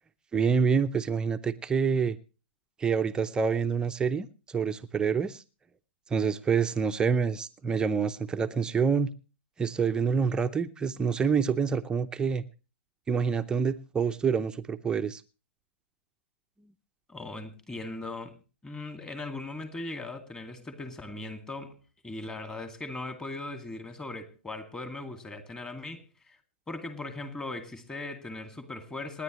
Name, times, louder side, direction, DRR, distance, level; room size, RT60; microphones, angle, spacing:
voice 1, 0.3-2.2 2.8-5.4 6.1-9.1 9.6-12.4 13.1-15.2, right 6 dB, 10° right, 0.7 m, -27 dB
voice 2, 17.1-21.8 22.0-26.4 26.7-29.2, left 2 dB, 10° left, 2.1 m, -39 dB
26.5 x 10.0 x 3.1 m
hypercardioid pair, 125°, 6 cm